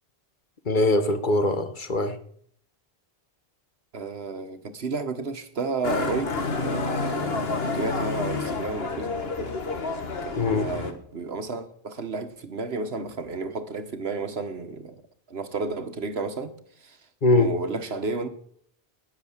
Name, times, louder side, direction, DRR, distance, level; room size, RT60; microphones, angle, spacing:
voice 1, 0.7-2.1 10.4-10.7 17.2-17.5, left 2 dB, 50° left, 1.3 m, -22 dB
voice 2, 3.9-9.5 10.2-15.0 15.3-16.5 16.8-17.0 17.3-18.3, right 3 dB, 75° right, 1.6 m, -32 dB
Motorcycle, 5.8-10.9, left 3 dB, 70° left, 1.8 m, -29 dB
19.0 x 7.3 x 7.3 m
omnidirectional pair, 1.1 m